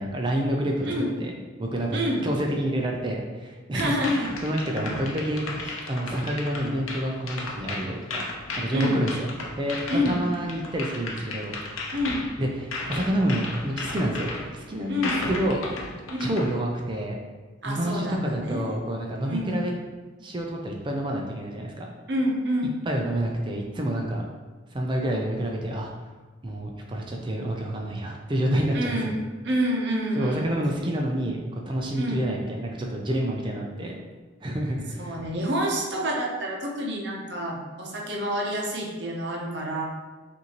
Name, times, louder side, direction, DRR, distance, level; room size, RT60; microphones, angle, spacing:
voice 1, 0.0-0.9 1.2-1.3 1.6-8.2 8.6-9.3 9.6-9.8 10.1-11.6 12.4-15.7 16.2-17.2 17.7-19.7 20.2-21.9 22.9-24.3 24.7-25.9 26.4-29.1 30.2-34.0 34.4-35.2, right 1 dB, 25° right, 0 dB, 0.4 m, -28 dB
voice 2, 1.9-2.3 3.7-4.4 8.7-9.0 9.9-10.3 11.9-12.3 14.9-15.3 16.1-16.4 17.6-18.8 19.2-19.6 22.1-22.8 28.7-30.6 31.9-32.3 35.0-39.8, equal, 55° right, -1 dB, 0.7 m, -28 dB
sound 1, 3.8-16.5, left 2 dB, 85° left, 0.7 m, -35 dB
5.4 x 2.6 x 2.9 m, 1.3 s
head